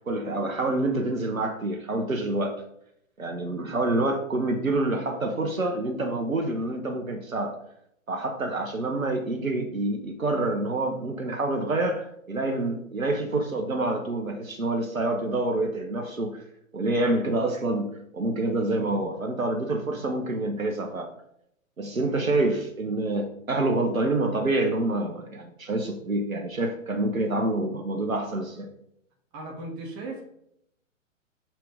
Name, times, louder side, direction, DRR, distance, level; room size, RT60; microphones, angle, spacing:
voice 1, 0.1-2.6 3.2-7.6 8.1-16.4 16.7-21.1 21.8-28.7, right 2 dB, 90° right, 4 dB, 1.1 m, -27 dB
voice 2, 29.3-30.2, right 2 dB, 30° right, 0 dB, 2.1 m, -39 dB
6.1 x 5.9 x 3.5 m, 0.73 s
figure-of-eight pair, 120°, 40 cm